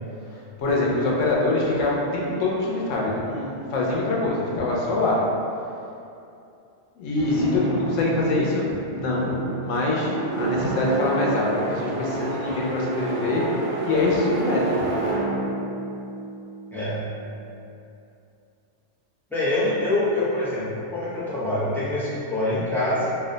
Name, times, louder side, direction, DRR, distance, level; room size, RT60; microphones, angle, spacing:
voice 1, 0.3-5.2 7.0-13.6 13.8-14.9, left 2 dB, 85° left, -3 dB, 1.0 m, -24 dB
sound 1, 7.1-17.1, right 2 dB, 80° right, 1.0 m, -29 dB
voice 2, 16.7-17.0 19.3-23.1, left 1 dB, ahead, -11 dB, 0.5 m, -25 dB
2.7 x 2.1 x 3.8 m, 2.6 s
omnidirectional pair, 1.3 m